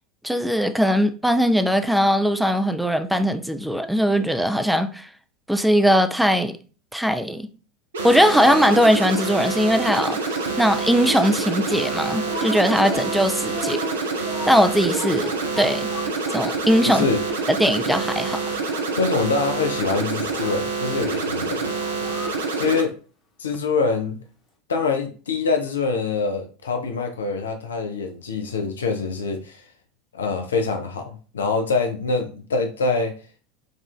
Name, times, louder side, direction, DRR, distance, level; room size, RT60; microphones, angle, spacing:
voice 1, 0.2-5.1 5.5-6.5 6.9-7.5 8.0-13.8 14.5-15.3 15.6-15.9 16.3-17.0 17.5-18.4, equal, ahead, 0.3 m, -20 dB
sound 1, 7.9-22.8, right 4 dB, 70° right, 0.5 m, -27 dB
Speech, 9.1-16.7 17.3-17.4 17.9-18.9 20.3-20.6 21.7-22.5, left 1 dB, 25° left, 1.1 m, -37 dB
voice 2, 16.8-17.3 19.0-21.6 22.5-22.9 23.4-24.2 24.7-29.7 30.1-33.1, left 4 dB, 70° left, 0.4 m, -25 dB
4.9 x 2.4 x 2.2 m
figure-of-eight pair, 80°, 0 cm